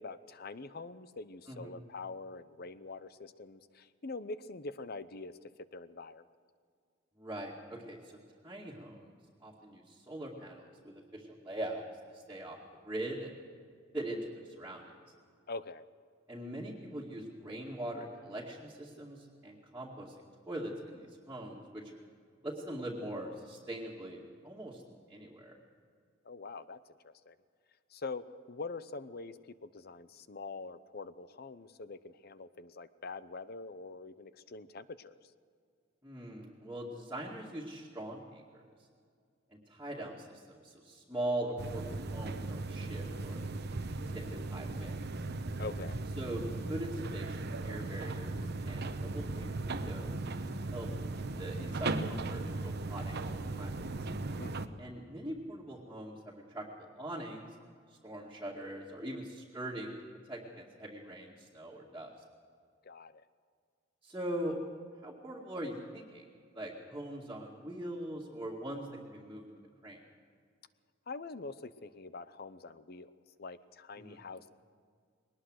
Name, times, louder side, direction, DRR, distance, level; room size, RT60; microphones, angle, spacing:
voice 1, 0.0-6.2 15.5-15.8 26.2-27.4 27.9-35.3 45.6-46.0 54.4-54.8 62.8-63.2 71.1-73.1 73.4-74.5, left 3 dB, 55° left, 14 dB, 0.8 m, -44 dB
voice 2, 1.5-1.8 7.2-8.2 8.4-12.6 12.8-13.4 13.9-14.9 16.3-21.8 22.4-24.8 25.1-25.6 36.0-38.6 39.5-43.4 44.1-45.1 46.2-50.2 50.7-50.9 51.1-53.9 54.8-57.5 58.0-59.9 60.3-62.1 64.0-64.6 65.0-66.3 66.5-70.0 74.0-74.2, right 1 dB, 10° right, -5 dB, 2.2 m, -42 dB
sound 1, 41.6-54.7, right 2 dB, 55° right, 1.0 m, -37 dB
21.5 x 19.5 x 6.4 m, 2.1 s
head